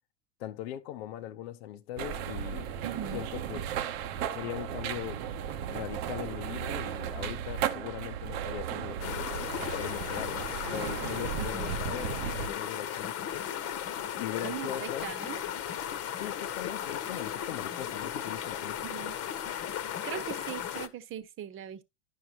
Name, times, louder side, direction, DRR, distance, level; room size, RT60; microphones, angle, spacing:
voice 1, 0.4-2.7 3.1-3.7 4.3-5.3 5.7-13.6 14.1-15.1 16.1-18.9, left 12 dB, 70° left, 0.9 m, -40 dB
sound 1, 2.0-12.5, right 9 dB, 60° right, 0.9 m, -35 dB
voice 2, 2.8-3.2 11.4-11.7 14.4-15.4 18.8-19.2 19.8-21.8, right 9 dB, 40° right, 1.1 m, -40 dB
sound 2, 9.0-20.9, left 10 dB, 45° left, 1.1 m, -36 dB
10.5 x 6.3 x 2.9 m
hypercardioid pair, 90°, 33 cm